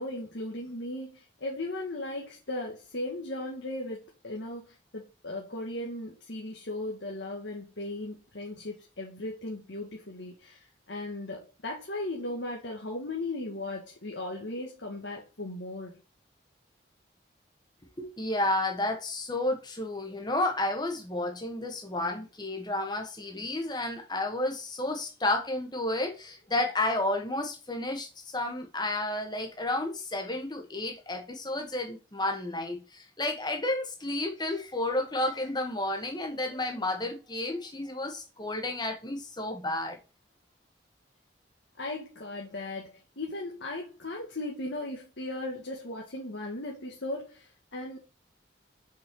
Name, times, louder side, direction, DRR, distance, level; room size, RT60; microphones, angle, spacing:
voice 1, 0.0-16.0 41.8-48.0, left 2 dB, 75° left, 1.6 m, -37 dB
voice 2, 18.0-40.0, left 2 dB, 20° left, 1.3 m, -31 dB
5.5 x 4.8 x 5.3 m
head